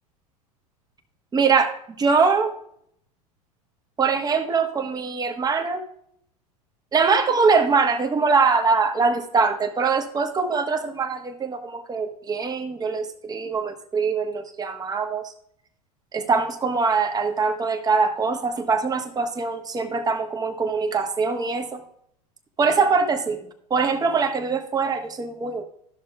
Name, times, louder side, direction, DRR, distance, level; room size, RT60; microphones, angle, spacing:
voice 1, 1.3-2.5 4.0-5.8 6.9-15.3 16.1-21.8 22.6-23.4 23.7-25.6, right 4 dB, 20° right, 5 dB, 1.1 m, -23 dB
13.0 x 6.4 x 2.3 m, 0.69 s
hypercardioid pair, 90°, 20 cm